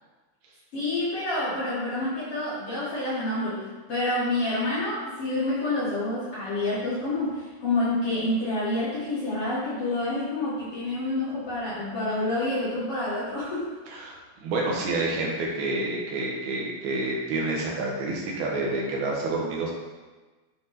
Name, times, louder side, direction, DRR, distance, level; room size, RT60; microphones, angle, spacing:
voice 1, 0.7-13.8, left 2 dB, 45° left, -10 dB, 2.4 m, -28 dB
voice 2, 13.9-19.7, right 2 dB, 85° right, -2 dB, 3.4 m, -28 dB
10.5 x 4.4 x 4.2 m, 1.3 s
omnidirectional pair, 4.4 m